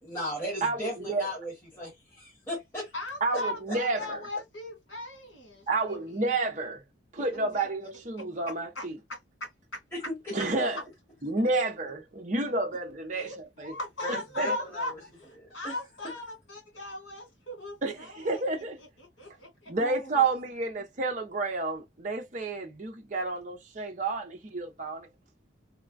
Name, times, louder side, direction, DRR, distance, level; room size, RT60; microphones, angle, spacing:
voice 1, 0.0-2.9 9.9-10.3 14.0-14.8 15.4-15.7 19.7-20.2, left 1 dB, 15° left, 1.3 m, -37 dB
voice 2, 0.6-1.3 3.2-4.2 5.7-6.8 7.1-9.0 10.3-10.8 11.2-13.8 14.1-14.6 17.8-18.8 19.7-25.1, right 3 dB, 40° right, 0.7 m, -30 dB
voice 3, 2.9-6.2 7.3-7.7 8.7-9.8 10.7-10.8 13.1-18.4 18.8-19.7, left 2 dB, 80° left, 1.7 m, -39 dB
3.2 x 2.2 x 2.4 m
head